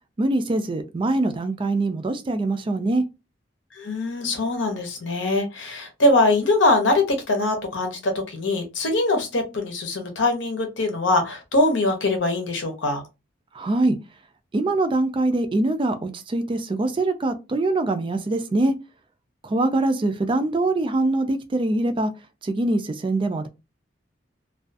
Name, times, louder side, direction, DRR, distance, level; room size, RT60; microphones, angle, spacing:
voice 1, 0.2-3.0 13.5-14.0 14.5-18.7 19.4-22.1 22.4-23.5, right 2 dB, 25° right, 0.3 m, -23 dB
voice 2, 3.8-13.0, left 2 dB, 85° left, 0.7 m, -22 dB
2.4 x 2.3 x 2.5 m
head